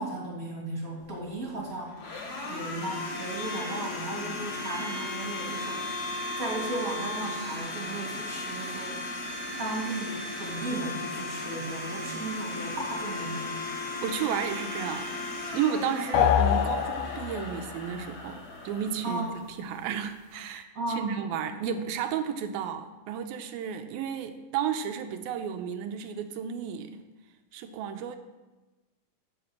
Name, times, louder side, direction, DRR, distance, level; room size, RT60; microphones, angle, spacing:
voice 1, 0.0-1.9 2.5-5.8 6.4-9.0 9.6-13.5 19.0-19.3 20.7-21.1, right 2 dB, 25° right, -3 dB, 2.8 m, -35 dB
Domestic sounds home sounds, 1.0-19.8, left 2 dB, 55° left, 2.8 m, -36 dB
voice 2, 14.0-15.1 15.5-26.9 27.5-28.2, right 8 dB, 80° right, 7 dB, 2.5 m, -32 dB
sound 1, 16.1-17.6, left 9 dB, 90° left, 1.9 m, -24 dB
8.8 x 8.6 x 7.3 m, 1.1 s
omnidirectional pair, 4.4 m